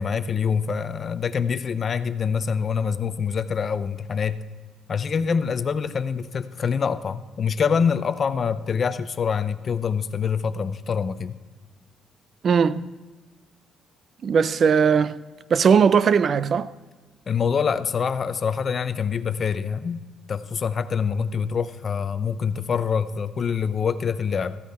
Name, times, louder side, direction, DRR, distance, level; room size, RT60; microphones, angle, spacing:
voice 1, 0.0-4.4 4.9-11.3 17.3-20.0 20.3-24.6, left 6 dB, 35° left, 0.5 m, -25 dB
voice 2, 12.4-12.9 14.2-15.2 15.5-16.7, right 6 dB, 40° right, 0.4 m, -19 dB
14.5 x 9.5 x 4.2 m
cardioid pair, 155°, 0 cm